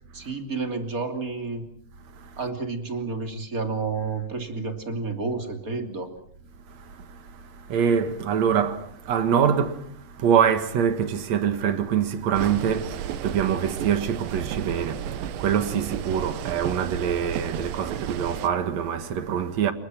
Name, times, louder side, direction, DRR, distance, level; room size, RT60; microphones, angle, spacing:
voice 1, 0.1-1.6 2.4-6.1, right 4 dB, 25° right, 2.5 m, -30 dB
voice 2, 7.7-9.8 10.2-19.7, right 8 dB, 55° right, 2.1 m, -24 dB
sound 1, 12.3-18.5, right 9 dB, 90° right, 3.5 m, -33 dB
28.5 x 23.5 x 6.0 m
omnidirectional pair, 5.0 m